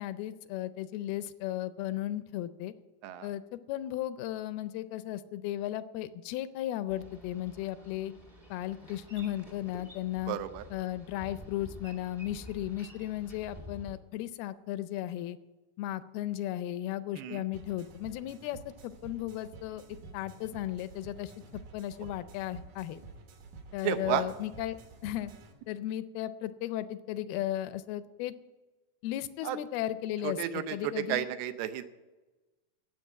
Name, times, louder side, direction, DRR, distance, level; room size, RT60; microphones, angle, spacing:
voice 1, 0.0-2.7 3.2-8.1 8.5-10.4 10.7-15.4 15.8-19.8 20.1-23.0 23.7-24.8 25.0-25.3 25.7-28.4 29.0-31.3, left 13 dB, 80° left, 14 dB, 2.4 m, -35 dB
Boat Water vehicle, 6.9-14.0, left 1 dB, 30° right, 0.6 m, -50 dB
voice 2, 10.3-10.6 17.2-17.4 23.8-24.2 29.4-29.6 30.2-30.8 31.1-31.9, right 11 dB, 85° right, 10 dB, 2.8 m, -32 dB
sound 1, 17.5-25.5, right 3 dB, 65° right, 2.9 m, -50 dB
13.0 x 8.0 x 9.0 m, 1.2 s
omnidirectional pair, 4.5 m